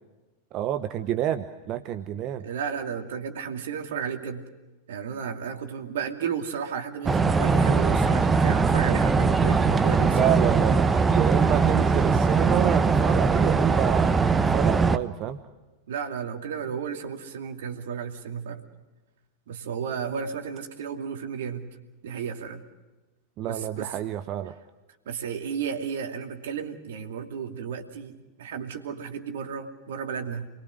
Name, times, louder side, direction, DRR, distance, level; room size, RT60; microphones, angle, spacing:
voice 1, 0.5-2.5 10.0-15.4 23.4-24.5, right 12 dB, 35° right, 10 dB, 1.0 m, -29 dB
voice 2, 2.4-4.4 4.9-10.6 15.9-18.6 19.5-21.7 22.0-22.6 23.5-24.0 25.1-30.5, right 7 dB, 60° right, 6 dB, 2.5 m, -33 dB
sound 1, 7.1-15.0, right 4 dB, 15° right, 1.0 m, -21 dB
29.0 x 22.0 x 6.4 m, 1.2 s
figure-of-eight pair, 90°, 0 cm